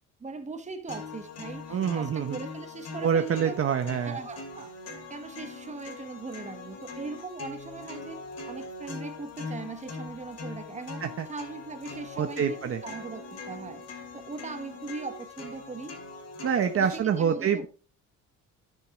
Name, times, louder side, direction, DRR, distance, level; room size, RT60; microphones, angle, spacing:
voice 1, 0.2-3.6 4.0-4.7 5.1-8.2 8.5-11.0 11.3-13.8 14.1-15.9 16.7-17.7, right 4 dB, 20° right, 1.1 m, -39 dB
sound 1, 0.9-16.9, left 3 dB, 50° left, 2.5 m, -42 dB
voice 2, 1.7-2.4 3.0-4.2 11.0-11.3 12.2-12.8 16.4-17.7, right 7 dB, 45° right, 0.9 m, -26 dB
11.0 x 6.5 x 3.6 m
cardioid pair, 140°, 31 cm